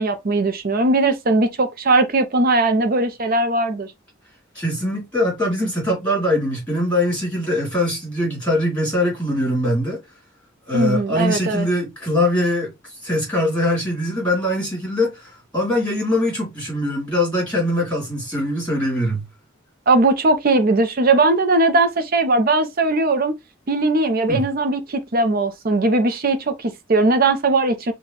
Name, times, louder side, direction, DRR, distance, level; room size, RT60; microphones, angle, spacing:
voice 1, 0.0-3.9 10.7-11.7 19.9-23.4 23.7-27.9, right 2 dB, 50° right, 0.6 m, -19 dB
voice 2, 4.5-10.0 10.7-12.7 13.0-19.3 24.3-24.5, left 1 dB, 5° left, 2.7 m, -22 dB
5.8 x 2.3 x 2.9 m
head